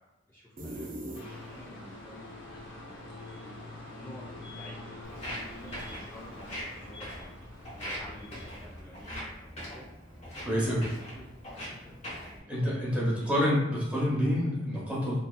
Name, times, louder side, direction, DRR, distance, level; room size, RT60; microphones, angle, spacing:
voice 1, 0.0-3.0 3.4-7.4 7.8-9.9 10.3-13.4, equal, 15° left, -8 dB, 0.4 m, -51 dB
sound 1, 0.6-1.8, right 1 dB, 50° right, 0.5 m, -40 dB
sound 2, 1.1-8.8, left 2 dB, 90° left, 0.6 m, -45 dB
Walk footsteps, 5.0-12.4, equal, 35° left, 1.0 m, -42 dB
voice 2, 10.5-10.8 12.5-15.2, equal, 5° right, -7 dB, 0.8 m, -27 dB
2.7 x 2.4 x 2.2 m, 0.84 s
head